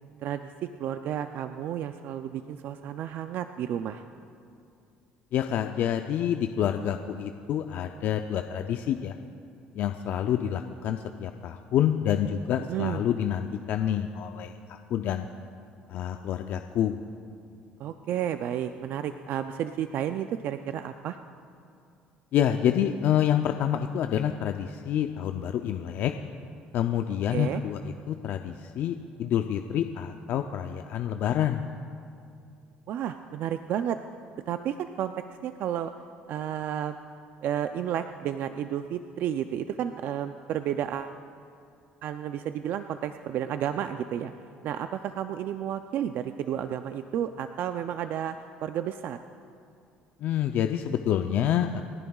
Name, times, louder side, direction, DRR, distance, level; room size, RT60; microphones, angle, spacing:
voice 1, 0.2-0.5 0.8-4.0 12.6-13.0 17.8-21.2 27.3-27.6 32.9-34.0 34.5-35.1 35.4-35.9 36.3-37.0 37.4-41.2 42.0-44.3 44.6-48.4 48.6-49.2, right 10 dB, 65° right, 9 dB, 0.4 m, -31 dB
voice 2, 5.3-9.2 9.8-15.3 15.9-17.0 22.3-26.1 26.7-31.6 50.2-51.8, left 10 dB, 65° left, 6 dB, 0.5 m, -28 dB
29.0 x 11.0 x 2.4 m, 2.4 s
supercardioid pair, 90°, 4 cm